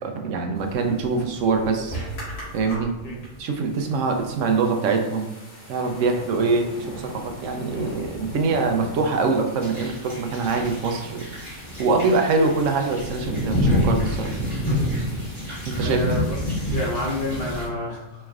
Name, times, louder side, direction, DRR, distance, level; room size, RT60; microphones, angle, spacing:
voice 1, 0.0-2.0 2.5-2.9 3.4-5.3 5.7-11.2 11.8-14.3 15.7-16.0, right 4 dB, 75° right, 4 dB, 0.9 m, -24 dB
sound 1, 0.6-17.7, left 1 dB, 75° left, 1.8 m, -30 dB
sound 2, 9.6-17.7, right 1 dB, 20° right, 1.5 m, -41 dB
voice 2, 15.8-18.3, left 1 dB, 50° left, -4 dB, 1.1 m, -30 dB
4.4 x 3.1 x 2.4 m, 1.0 s
omnidirectional pair, 1.3 m